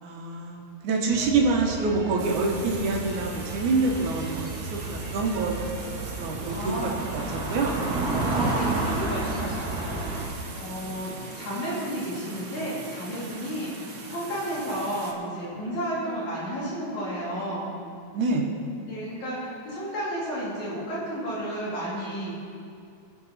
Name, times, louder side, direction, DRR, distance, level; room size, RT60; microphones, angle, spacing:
voice 1, 0.0-7.2 7.5-7.8 8.4-8.5 18.1-18.5, right 3 dB, 75° right, 0 dB, 2.7 m, -26 dB
sound 1, 1.1-10.3, right 2 dB, 40° right, 1.6 m, -31 dB
sound 2, 2.2-15.1, right 3 dB, 60° right, 1.0 m, -41 dB
voice 2, 6.5-7.1 8.1-17.7 18.9-22.3, equal, 70° left, -8 dB, 4.7 m, -32 dB
21.0 x 7.6 x 4.2 m, 2.4 s
omnidirectional pair, 3.5 m